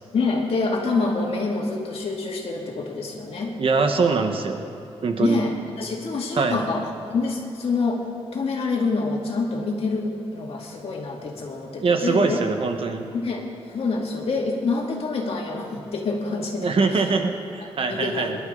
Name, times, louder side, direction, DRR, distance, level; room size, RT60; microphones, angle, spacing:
voice 1, 0.1-3.5 5.2-8.0 8.3-12.4 13.1-16.7 17.9-18.3, left 3 dB, 65° left, -1 dB, 2.6 m, -26 dB
voice 2, 3.6-4.6 5.0-5.4 6.3-6.6 11.8-13.0 16.6-18.4, right 4 dB, 55° right, 5 dB, 1.4 m, -22 dB
25.5 x 12.0 x 4.0 m, 2.6 s
wide cardioid pair, 115°, 11 cm